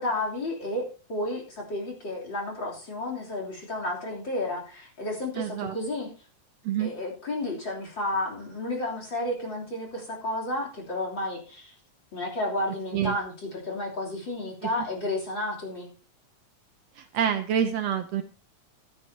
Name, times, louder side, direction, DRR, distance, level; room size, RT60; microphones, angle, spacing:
voice 1, 0.0-6.1 6.8-11.7 12.1-15.9, left 1 dB, 40° left, 0 dB, 3.9 m, -32 dB
voice 2, 5.4-5.8 6.7-6.9 12.9-13.2 14.6-14.9 17.0-18.2, right 9 dB, 70° right, 6 dB, 1.8 m, -27 dB
15.5 x 12.5 x 2.9 m, 0.35 s
omnidirectional pair, 3.4 m